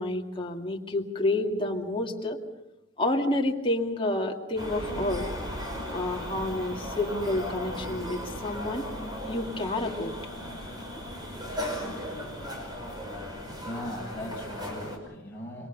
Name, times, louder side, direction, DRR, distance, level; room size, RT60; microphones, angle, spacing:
voice 1, 0.0-2.4 3.0-5.3 5.9-8.9 9.2-10.2, left 1 dB, 25° left, 1 dB, 2.3 m, -29 dB
sound 1, 4.6-15.0, equal, 20° right, 5.5 m, -36 dB
voice 2, 12.8-15.7, left 1 dB, 10° left, -5 dB, 6.8 m, -40 dB
27.5 x 24.5 x 5.6 m, 0.89 s
head